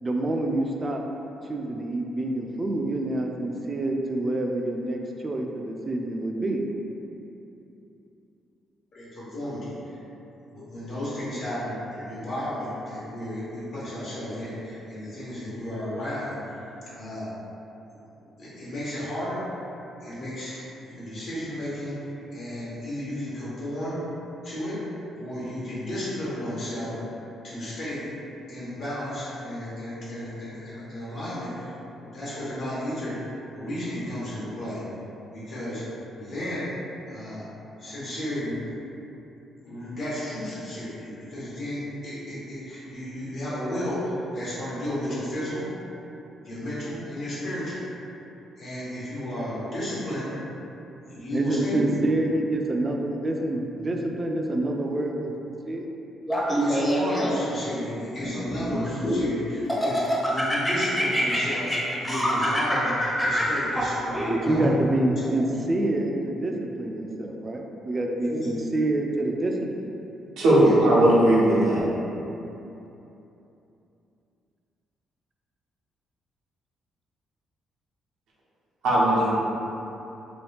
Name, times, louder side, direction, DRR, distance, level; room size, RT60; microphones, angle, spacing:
voice 1, 0.0-1.0 1.5-6.6 51.3-55.9 64.3-69.6, right 2 dB, 30° right, 1 dB, 0.3 m, -27 dB
voice 2, 8.9-10.0 10.5-16.4 16.9-17.3 18.2-19.4 20.0-24.0 24.4-24.8 25.1-26.9 27.4-28.1 28.5-33.2 33.5-34.8 35.3-35.8 36.1-36.7 37.1-37.5 37.8-38.6 39.6-45.7 46.4-47.8 48.5-50.3 51.0-52.0 56.6-65.5 68.3-68.6 70.6-70.7, left 1 dB, 65° left, -10 dB, 1.0 m, -33 dB
Laughter, 56.3-57.6 58.2-59.3 59.7-64.7, equal, 10° left, 0.6 m, -25 dB
voice 3, 70.4-71.8 78.8-79.3, right 1 dB, 90° right, -8 dB, 0.8 m, -18 dB
2.9 x 2.3 x 3.3 m, 2.9 s
cardioid pair, 90°, 0 cm